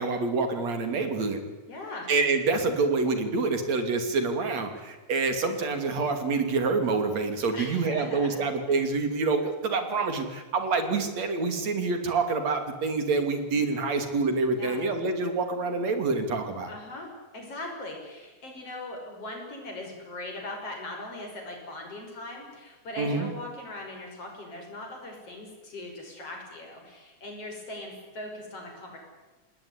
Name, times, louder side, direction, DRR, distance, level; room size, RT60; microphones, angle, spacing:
voice 1, 0.0-1.4 2.1-16.7 23.0-23.3, right 4 dB, 65° right, 7 dB, 3.9 m, -27 dB
voice 2, 1.7-2.1 7.5-8.4 8.7-8.8 14.6-14.8 16.7-29.0, left 2 dB, 50° left, 2 dB, 7.2 m, -40 dB
26.5 x 19.5 x 9.8 m, 1.2 s
omnidirectional pair, 3.4 m